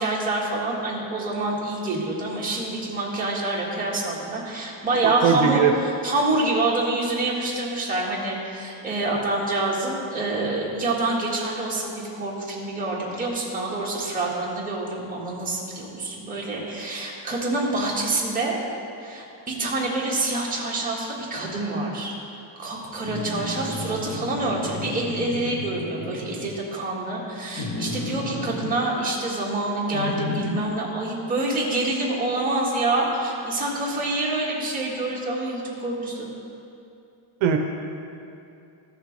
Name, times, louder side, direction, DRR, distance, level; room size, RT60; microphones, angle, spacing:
voice 1, 0.0-18.6 19.0-22.1 22.6-36.3, right 2 dB, 15° right, -6 dB, 1.7 m, -27 dB
voice 2, 5.0-5.7 37.4-37.6, right 8 dB, 70° right, 4 dB, 0.7 m, -20 dB
sound 1, 23.0-26.6 27.6-28.8 29.9-30.7, left 2 dB, 30° left, 0.8 m, -32 dB
15.0 x 6.6 x 3.3 m, 2.7 s
cardioid pair, 170°, 48 cm